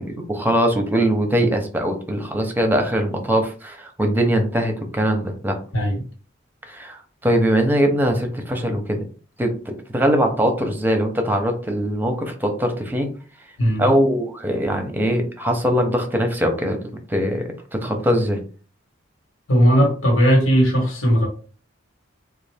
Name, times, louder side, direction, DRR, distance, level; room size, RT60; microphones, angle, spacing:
voice 1, 0.0-5.6 6.7-9.0 9.4-13.1 13.8-16.8 17.1-18.4, equal, 10° right, 0.7 m, -21 dB
voice 2, 5.7-6.0 13.6-13.9 19.5-21.3, equal, 80° left, 1.5 m, -17 dB
3.7 x 2.4 x 3.4 m
head